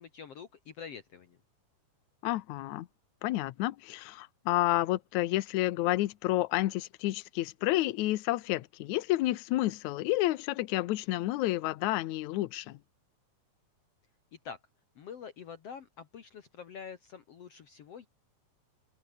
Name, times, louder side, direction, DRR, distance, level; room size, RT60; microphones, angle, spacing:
voice 1, 0.0-1.4 14.3-14.6 15.0-18.1, left 7 dB, 55° left, 2.3 m, -46 dB
voice 2, 2.2-2.9 3.2-12.8, left 17 dB, 70° left, 2.1 m, -30 dB
omnidirectional pair, 3.7 m